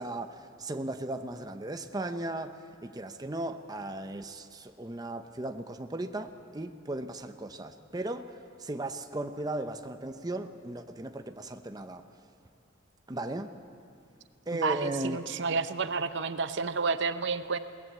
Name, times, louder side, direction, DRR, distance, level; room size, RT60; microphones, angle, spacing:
voice 1, 0.0-12.1 13.1-13.5 14.5-15.2, right 1 dB, 20° right, 7 dB, 0.7 m, -36 dB
voice 2, 14.6-17.6, right 4 dB, 60° right, 11 dB, 0.7 m, -30 dB
21.5 x 18.5 x 8.1 m, 2.3 s
head